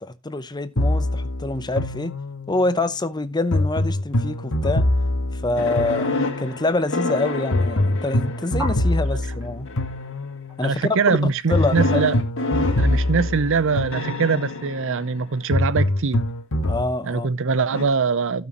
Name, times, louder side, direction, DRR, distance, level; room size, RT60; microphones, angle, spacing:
voice 1, 0.0-2.1 2.5-4.8 5.3-9.7 10.6-12.0 16.6-17.3, left 2 dB, 20° left, 0.7 m, -26 dB
sound 1, 0.8-2.6 3.5-6.6 7.5-10.6 11.5-14.5 15.5-16.9, left 1 dB, 80° left, 1.6 m, -24 dB
sound 2, 5.6-8.9 9.7-10.1 11.5-15.6 17.7-17.9, left 2 dB, 65° left, 2.0 m, -29 dB
sound 3, 8.5-13.2, equal, 10° right, 4.1 m, -38 dB
voice 2, 10.6-12.2 12.8-16.2 17.0-18.5, right 5 dB, 65° right, 0.6 m, -22 dB
16.5 x 6.2 x 3.0 m
head